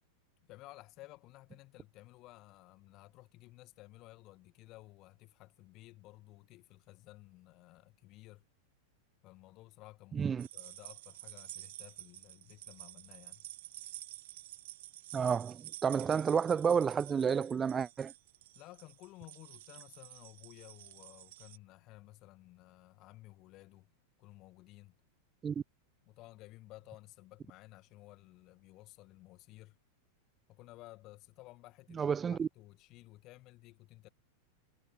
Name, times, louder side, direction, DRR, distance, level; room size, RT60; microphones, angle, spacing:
voice 1, 0.5-8.4 9.2-13.4 18.5-23.9 24.2-24.9 26.1-29.8 30.5-34.1, left 19 dB, 40° left, 2.1 m, -55 dB
voice 2, 10.1-10.5 15.1-18.1 25.4-25.6 31.9-32.5, right 6 dB, 20° right, 0.3 m, -30 dB
sound 1, 10.4-21.6, right 15 dB, 55° right, 1.3 m, -50 dB
figure-of-eight pair, 90°, 0 cm